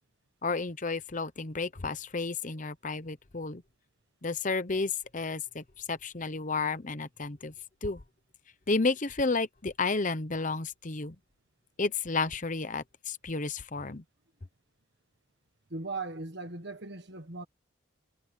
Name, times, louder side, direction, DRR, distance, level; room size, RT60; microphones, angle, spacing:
voice 1, 0.4-3.6 4.2-7.5 7.8-8.0 8.7-11.2 11.8-14.0, left 3 dB, 35° left, 0.9 m, -32 dB
voice 2, 15.7-17.4, right 3 dB, 55° right, 1.6 m, -38 dB
head